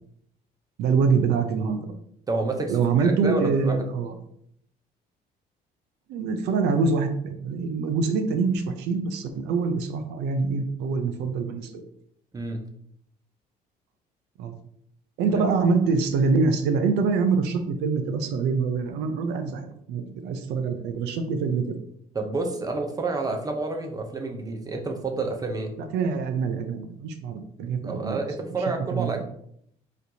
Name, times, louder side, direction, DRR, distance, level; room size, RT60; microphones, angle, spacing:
voice 1, 0.8-1.9 2.7-4.1 6.1-11.8 14.4-14.5 15.2-21.8 25.8-28.2 28.9-29.2, right 4 dB, 90° right, 7 dB, 0.6 m, -25 dB
voice 2, 2.3-2.7 3.0-3.9 12.3-12.6 15.3-15.4 22.1-25.7 27.8-29.2, right 3 dB, 20° right, 3 dB, 0.8 m, -29 dB
4.1 x 3.2 x 2.8 m, 0.68 s
cardioid pair, 110°, 17 cm